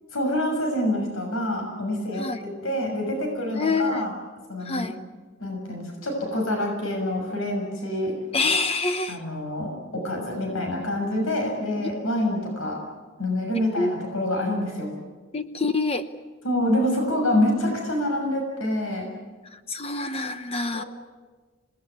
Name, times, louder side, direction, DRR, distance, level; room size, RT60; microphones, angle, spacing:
voice 1, 0.1-4.1 4.5-4.9 5.4-8.1 9.1-12.8 13.2-14.9 16.4-19.1 20.7-20.9, left 1 dB, 75° left, 2 dB, 6.6 m, -26 dB
voice 2, 3.5-4.0 4.6-5.0 8.3-9.2 11.8-11.9 13.8-14.0 15.3-16.1 18.2-18.3 19.5-20.8, left 3 dB, 30° left, 9 dB, 0.9 m, -26 dB
26.5 x 19.5 x 9.5 m, 1.3 s
head